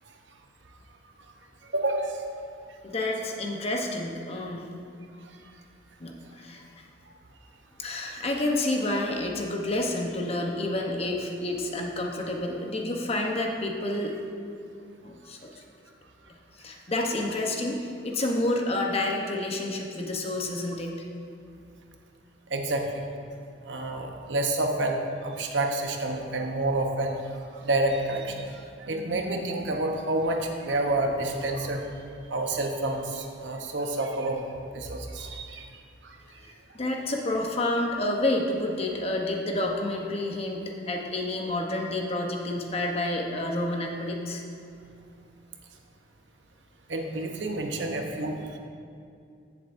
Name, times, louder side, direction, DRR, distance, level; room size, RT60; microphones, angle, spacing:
voice 1, 1.6-2.5 22.5-23.0 23.6-27.2 27.5-31.8 32.3-34.4 34.7-35.6 36.0-36.2 46.9-48.6, right 2 dB, 85° right, 3 dB, 0.9 m, -29 dB
voice 2, 2.8-4.7 6.0-6.6 7.8-14.1 15.0-15.4 16.3-20.9 36.4-44.4 47.4-47.9 48.2-48.4, left 1 dB, 35° left, 1 dB, 0.9 m, -29 dB
15.5 x 7.1 x 2.6 m, 2.4 s
head